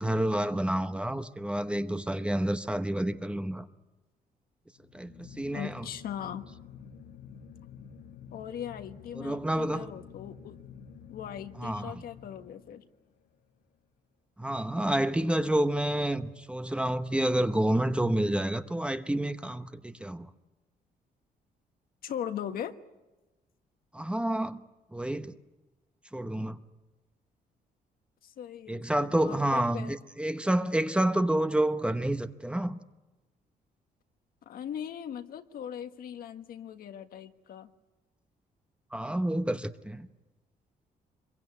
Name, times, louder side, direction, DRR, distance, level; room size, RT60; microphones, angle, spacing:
voice 1, 0.0-3.7 4.9-5.9 9.1-9.9 11.6-12.0 14.4-20.3 23.9-24.6 24.9-25.3 26.1-26.6 28.7-32.8 38.9-40.1, right 1 dB, 5° right, 0.9 m, -29 dB
sound 1, 4.7-13.1, left 7 dB, 85° left, 1.6 m, -49 dB
voice 2, 5.5-6.5 8.3-10.6 11.1-12.8 22.0-22.7 28.2-29.9 34.4-37.7, left 9 dB, 70° left, 1.5 m, -39 dB
26.0 x 23.0 x 9.7 m
cardioid pair, 140°, 16 cm